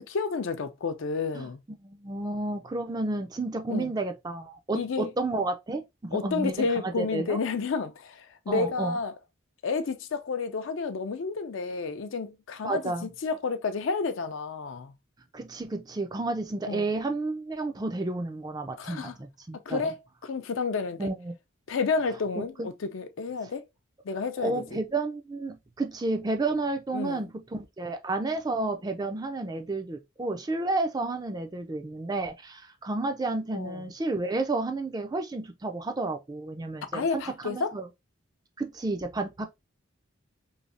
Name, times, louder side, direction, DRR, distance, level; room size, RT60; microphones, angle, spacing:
voice 1, 0.0-1.6 3.7-3.9 4.7-5.1 6.1-9.1 9.6-14.9 16.7-16.9 18.8-19.1 19.7-20.0 20.2-21.1 21.7-23.6 24.1-24.8 26.9-27.3 33.5-33.8 36.9-37.7, left 4 dB, 70° left, 0.5 m, -30 dB
voice 2, 1.8-7.4 8.5-9.0 12.6-13.1 15.3-19.9 21.0-21.3 22.4-22.7 24.4-37.9 38.6-39.5, right 2 dB, 20° right, 0.3 m, -31 dB
3.1 x 2.7 x 2.5 m
head